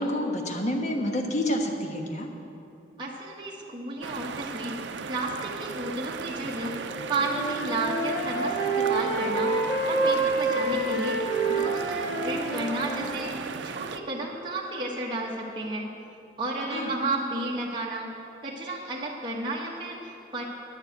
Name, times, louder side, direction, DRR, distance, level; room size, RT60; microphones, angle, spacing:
voice 1, 0.0-2.3 16.7-16.9, left 1 dB, 40° left, 2 dB, 1.3 m, -28 dB
voice 2, 3.0-6.7 7.1-11.2 11.5-15.9 16.4-18.1 18.4-20.4, right 2 dB, 25° right, -4 dB, 1.3 m, -32 dB
sound 1, 4.0-14.0, right 5 dB, 85° right, 0.5 m, -37 dB
Wind instrument woodwind instrument, 6.9-13.3, right 3 dB, 85° left, 1.9 m, -28 dB
9.5 x 7.2 x 9.2 m, 2.7 s
head